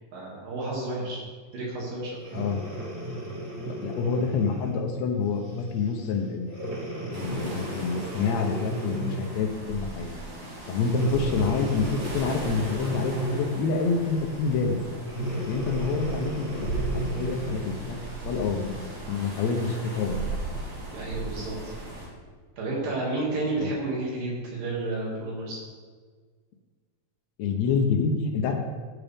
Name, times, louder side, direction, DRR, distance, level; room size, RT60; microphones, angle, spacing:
voice 1, 0.1-1.2 1.5-2.1 20.9-21.7 22.6-25.6, right 2 dB, 70° right, -4 dB, 4.0 m, -31 dB
Breathing, 2.2-4.8 5.5-5.7 6.5-9.4 10.8-13.7 15.1-17.8 18.4-18.5, right 1 dB, 30° right, 1.3 m, -34 dB
voice 2, 3.7-6.6 7.1-10.1 10.7-14.8 15.3-18.0 18.2-18.7 19.1-20.2 23.6-23.7 27.4-28.5, left 5 dB, 75° left, 2 dB, 1.7 m, -27 dB
sound 1, 7.1-22.1, right 2 dB, 55° right, 3.7 m, -37 dB
14.0 x 7.0 x 3.6 m, 1.5 s
omnidirectional pair, 4.0 m